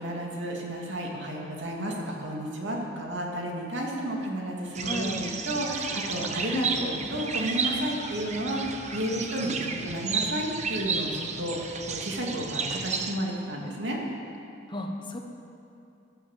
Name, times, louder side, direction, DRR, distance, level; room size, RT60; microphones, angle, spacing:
voice 1, 0.0-14.0, right 1 dB, 75° right, -1 dB, 2.6 m, -32 dB
sound 1, 4.7-13.1, right 5 dB, 40° right, 1.0 m, -32 dB
voice 2, 4.8-5.2 6.5-7.1 9.3-9.7 14.7-15.2, left 1 dB, 25° left, 3 dB, 1.3 m, -34 dB
16.0 x 11.0 x 7.5 m, 2.6 s
head